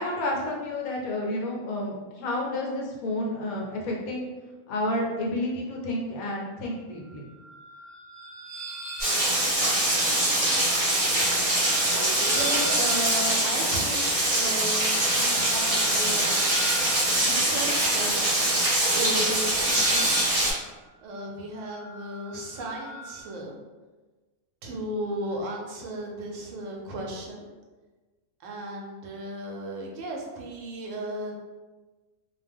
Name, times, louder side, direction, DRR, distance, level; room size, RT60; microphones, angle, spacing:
voice 1, 0.0-4.3 4.7-7.3, left 1 dB, 80° left, -2 dB, 1.1 m, -30 dB
sound 1, 7.0-23.2, equal, 5° right, 0.7 m, -39 dB
Rain, 9.0-20.5, right 1 dB, 30° right, 0.8 m, -24 dB
voice 2, 12.2-16.4 17.1-18.3 18.9-20.1 21.0-23.6 24.6-27.5 28.4-31.3, right 1 dB, 70° right, -1 dB, 0.9 m, -35 dB
2.5 x 2.2 x 3.4 m, 1.2 s
omnidirectional pair, 1.5 m